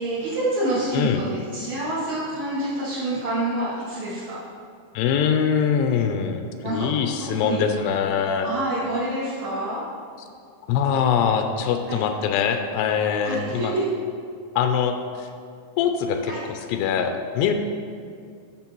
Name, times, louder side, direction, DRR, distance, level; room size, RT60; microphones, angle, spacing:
voice 1, 0.0-4.4 6.6-6.9 7.2-7.9 8.4-9.8 11.9-12.0 13.2-13.8 16.3-16.4, right 1 dB, 65° right, -14 dB, 3.9 m, -27 dB
voice 2, 5.0-8.5 10.7-13.7 14.6-15.3 15.8-16.3 16.7-17.5, left 7 dB, 85° left, 6 dB, 2.6 m, -23 dB
12.0 x 6.4 x 3.0 m, 2.3 s
omnidirectional pair, 4.7 m